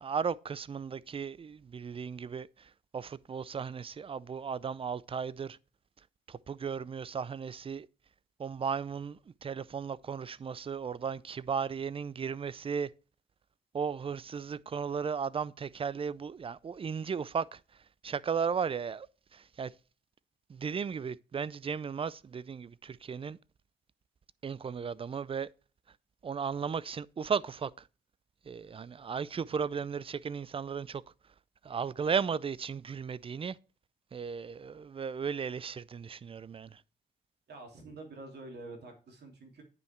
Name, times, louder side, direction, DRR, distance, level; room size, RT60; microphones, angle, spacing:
voice 1, 0.0-5.6 6.3-7.9 8.4-12.9 13.7-17.6 18.0-19.1 19.3-19.7 20.5-23.4 24.4-25.5 26.2-27.7 28.5-31.0 31.6-33.6 34.1-36.8, right 6 dB, 30° right, 0.4 m, -35 dB
voice 2, 37.5-39.6, right 2 dB, 55° right, 3.0 m, -47 dB
9.4 x 5.6 x 4.4 m
cardioid pair, 90°, 20 cm